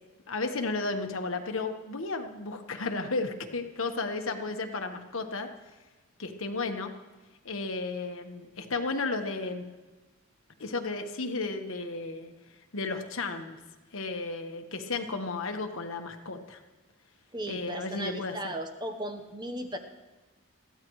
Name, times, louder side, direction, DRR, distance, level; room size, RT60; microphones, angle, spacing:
voice 1, 0.3-5.5 6.2-6.9 7.4-9.6 10.6-12.3 12.7-13.6 13.9-16.6 17.5-18.5, left 3 dB, 75° left, 5 dB, 1.3 m, -33 dB
voice 2, 17.3-19.8, right 1 dB, 20° right, 5 dB, 1.0 m, -36 dB
22.0 x 15.0 x 3.2 m, 1.2 s
head